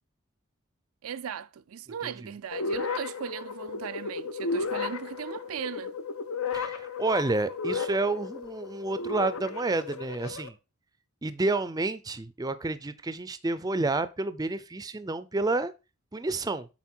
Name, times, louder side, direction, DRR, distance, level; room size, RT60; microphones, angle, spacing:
voice 1, 1.0-5.9, right 8 dB, 80° right, 0.4 m, -37 dB
sound 1, 2.5-10.5, left 4 dB, 80° left, 0.9 m, -34 dB
voice 2, 6.5-10.6 11.2-15.7 16.1-16.7, right 2 dB, 20° right, 0.4 m, -29 dB
8.3 x 4.2 x 4.4 m
head